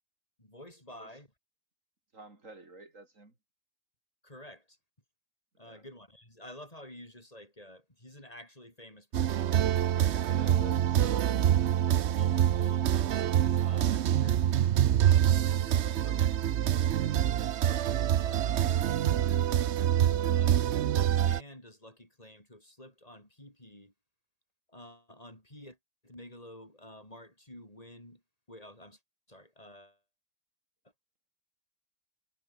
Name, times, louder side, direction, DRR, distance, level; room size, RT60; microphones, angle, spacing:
voice 1, 0.4-1.3 4.2-4.8 5.6-10.6 12.1-14.5 15.4-16.4 17.3-18.7 20.0-23.9 24.7-25.8 26.0-28.2 28.5-29.0 29.3-30.0, left 1 dB, 30° left, 5.8 m, -51 dB
voice 2, 2.1-3.3 5.6-5.8 10.2-11.7, right 2 dB, 85° right, 4.7 m, -47 dB
sound 1, 9.1-21.4, right 11 dB, 65° right, 0.9 m, -26 dB
omnidirectional pair, 1.3 m